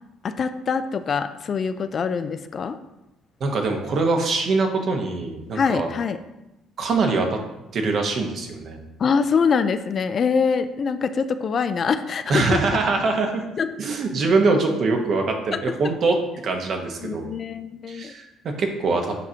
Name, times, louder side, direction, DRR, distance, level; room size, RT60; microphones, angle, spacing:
voice 1, 0.2-2.8 5.5-6.2 9.0-12.6 13.6-13.7 15.5-15.6 17.0-18.1, left 5 dB, 45° left, 10 dB, 0.4 m, -24 dB
voice 2, 3.4-5.9 6.8-7.4 7.7-8.8 12.3-13.4 13.8-17.2 17.9-19.2, right 3 dB, 55° right, 3 dB, 1.1 m, -23 dB
6.9 x 4.9 x 2.8 m, 0.95 s
supercardioid pair, 80°, 0 cm